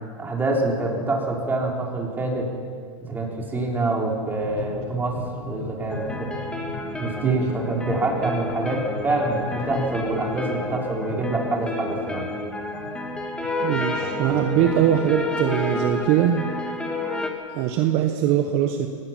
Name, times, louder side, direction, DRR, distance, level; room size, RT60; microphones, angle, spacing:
voice 1, 0.2-2.5 3.0-5.2 5.4-6.3 7.0-12.3, right 2 dB, 10° right, -1 dB, 3.7 m, -26 dB
sound 1, 4.2-16.1, left 5 dB, 65° left, 4.4 m, -38 dB
sound 2, 5.9-17.3, left 2 dB, 5° left, 1.7 m, -30 dB
voice 2, 13.6-16.4 17.5-18.9, right 10 dB, 40° right, 5 dB, 1.4 m, -22 dB
23.0 x 19.0 x 5.9 m, 2.1 s
hypercardioid pair, 140°, 17 cm